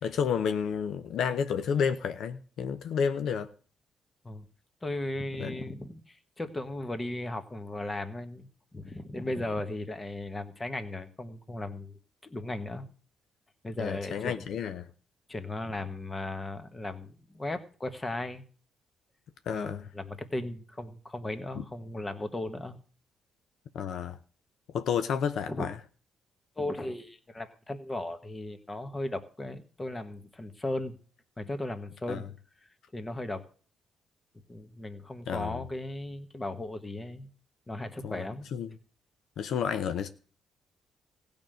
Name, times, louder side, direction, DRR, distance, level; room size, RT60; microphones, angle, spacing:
voice 1, 0.0-3.5 5.4-5.5 13.8-14.9 19.5-19.9 21.6-21.7 23.7-24.2 24.7-25.8 32.1-32.2 35.3-35.6 38.0-38.2 38.5-38.7 39.4-40.1, left 7 dB, 70° left, 0.7 m, -30 dB
voice 2, 4.8-12.9 13.6-14.5 15.3-18.4 19.5-22.8 25.5-25.6 26.6-31.0 31.4-32.3 32.9-33.4 34.5-37.3 37.7-38.5, left 2 dB, 20° left, 1.4 m, -36 dB
16.0 x 5.3 x 7.7 m
cardioid pair, 90°, 0 cm